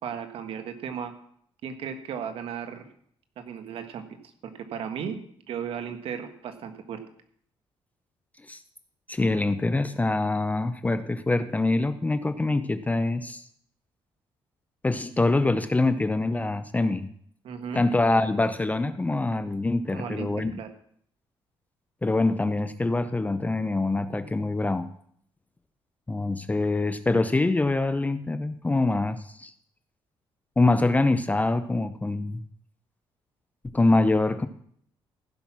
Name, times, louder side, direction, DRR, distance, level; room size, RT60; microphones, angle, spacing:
voice 1, 0.0-1.1 1.6-2.9 3.4-4.2 4.4-5.2 5.5-7.0 17.4-17.8 19.9-20.7, right 7 dB, 75° right, 7 dB, 1.5 m, -35 dB
voice 2, 9.1-13.4 14.8-17.1 17.7-20.5 22.0-24.9 26.1-29.5 30.6-32.4 33.7-34.5, left 2 dB, 15° left, 11 dB, 0.6 m, -24 dB
15.5 x 5.9 x 6.0 m, 0.64 s
cardioid pair, 105°, 10 cm